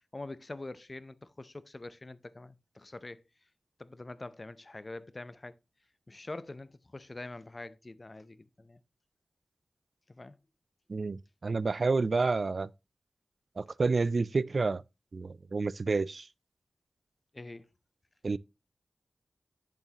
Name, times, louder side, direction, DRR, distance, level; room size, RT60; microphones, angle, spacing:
voice 1, 0.1-3.2 3.8-5.6 6.1-8.8 10.1-10.4 17.3-17.7, left 2 dB, 40° left, 0.6 m, -45 dB
voice 2, 10.9-12.7 13.6-14.8 15.1-16.3 18.2-18.4, right 3 dB, 60° right, 0.3 m, -29 dB
8.2 x 7.0 x 2.9 m
cardioid pair, 55°, 0 cm